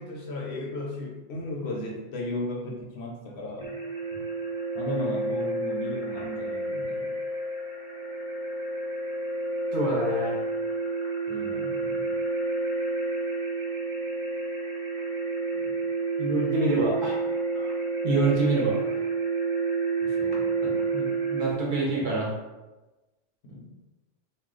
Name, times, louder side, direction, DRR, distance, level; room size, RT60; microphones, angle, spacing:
voice 1, 0.0-3.8 4.7-7.1 11.3-12.1 20.0-20.4 23.4-23.6, left 1 dB, 65° left, -1 dB, 0.9 m, -35 dB
sound 1, 3.6-21.6, right 3 dB, 5° right, 0.8 m, -30 dB
voice 2, 9.7-10.4 16.2-17.2 17.5-17.7 18.0-19.0 20.6-22.3, right 3 dB, 50° right, -3 dB, 0.8 m, -27 dB
2.3 x 2.3 x 3.6 m, 1.1 s
omnidirectional pair, 1.2 m